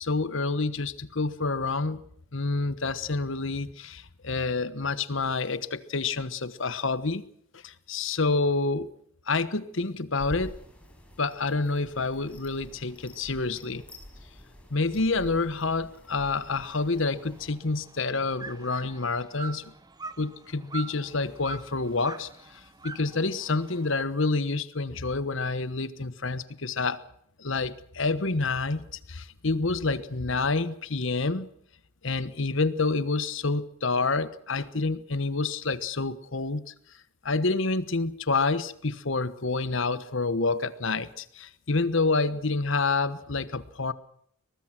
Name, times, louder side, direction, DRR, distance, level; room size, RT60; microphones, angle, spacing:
voice 1, 0.0-2.0 2.3-7.2 7.5-8.9 9.3-10.6 11.2-13.8 14.7-19.7 20.2-27.0 27.4-31.5 32.0-36.7 37.2-43.9, left 3 dB, 65° left, 15 dB, 1.2 m, -28 dB
sound 1, 10.2-17.5, equal, 5° left, 5.2 m, -47 dB
sound 2, 16.1-24.0, right 4 dB, 20° right, 1.0 m, -44 dB
23.0 x 20.0 x 6.1 m, 0.69 s
head